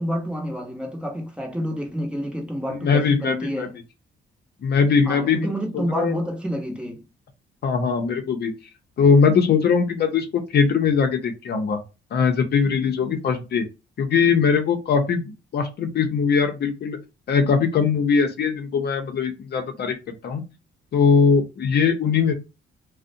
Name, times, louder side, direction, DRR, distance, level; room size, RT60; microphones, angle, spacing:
voice 1, 0.0-3.8 5.0-7.0, equal, 5° right, 0.7 m, -28 dB
voice 2, 2.7-3.7 4.6-6.2 7.6-8.5 9.0-11.8 12.1-13.7 14.0-15.2 15.5-17.0 17.3-20.4 20.9-22.3, left 5 dB, 55° left, 0.6 m, -21 dB
2.5 x 2.1 x 2.6 m
cardioid pair, 90°, 20 cm